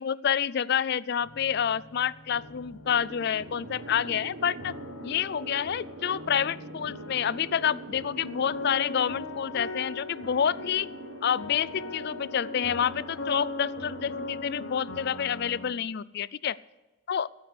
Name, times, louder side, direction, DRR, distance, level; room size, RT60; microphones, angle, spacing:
voice 1, 0.0-4.7 5.0-10.9 11.2-16.6 17.1-17.3, left 8 dB, 50° left, 21 dB, 0.4 m, -28 dB
sound 1, 1.2-15.7, left 2 dB, 85° left, 1.3 m, -41 dB
sound 2, 2.8-14.4, right 2 dB, 65° right, 1.3 m, -44 dB
15.0 x 9.0 x 6.6 m, 1.1 s
head